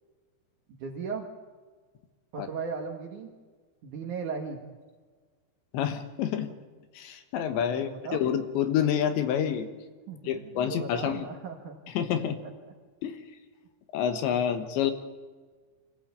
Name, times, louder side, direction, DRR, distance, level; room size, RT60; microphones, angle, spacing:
voice 1, 0.8-1.3 2.3-3.3 3.8-4.6 7.7-8.2 10.1-11.8 12.2-12.5, right 5 dB, 55° right, 2 dB, 2.4 m, -37 dB
voice 2, 5.7-6.5 7.0-9.7 10.3-11.3 12.0-12.4 13.0-13.2 13.9-14.9, left 9 dB, 75° left, 9 dB, 3.5 m, -28 dB
26.0 x 16.0 x 8.3 m, 1.4 s
omnidirectional pair, 5.4 m